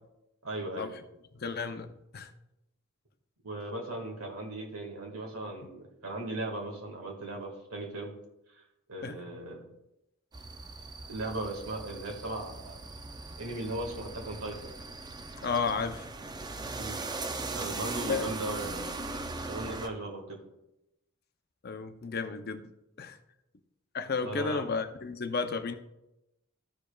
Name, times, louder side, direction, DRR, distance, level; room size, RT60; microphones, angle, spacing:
voice 1, 0.4-0.9 3.4-8.1 8.5-8.6 8.9-9.7 11.1-12.8 13.4-14.8 16.8-17.0 17.5-18.8 19.4-20.4 24.2-24.7, right 2 dB, 80° right, 1.8 m, -37 dB
voice 2, 1.3-2.3 9.0-9.2 15.4-16.1 18.1-18.3 21.6-22.7 23.0-23.2 23.9-25.7, left 4 dB, 45° left, 0.5 m, -33 dB
sound 1, 10.3-19.9, right 3 dB, 20° right, 0.4 m, -39 dB
14.5 x 5.1 x 2.3 m
head